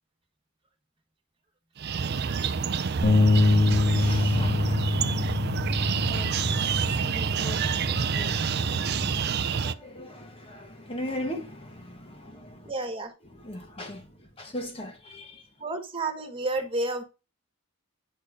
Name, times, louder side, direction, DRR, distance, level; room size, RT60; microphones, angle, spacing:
sound 1, 1.8-9.7, right 6 dB, 50° right, 0.5 m, -28 dB
sound 2, 3.0-9.3, left 2 dB, 50° left, 1.8 m, -25 dB
voice 1, 3.9-5.4 5.9-12.7 13.3-14.1 14.4-15.5, left 1 dB, 25° left, 1.3 m, -39 dB
voice 2, 12.7-13.1 15.6-17.0, right 2 dB, 25° right, 1.6 m, -30 dB
9.6 x 4.4 x 5.0 m
head